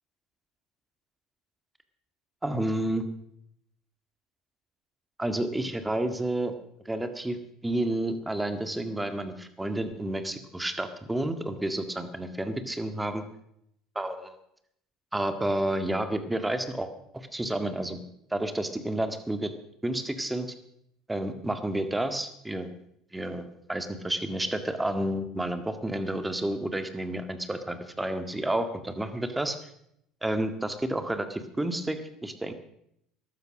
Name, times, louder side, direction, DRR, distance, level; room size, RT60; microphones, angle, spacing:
voice 1, 2.4-3.1 5.2-6.5 6.9-7.4 7.6-13.2 14.0-14.4 15.1-18.0 18.3-19.5 19.8-20.5 21.1-22.7 23.1-29.6 30.2-32.5, right 1 dB, 10° right, 9 dB, 1.9 m, -30 dB
14.5 x 12.0 x 6.3 m, 0.74 s
hypercardioid pair, 70°, 0 cm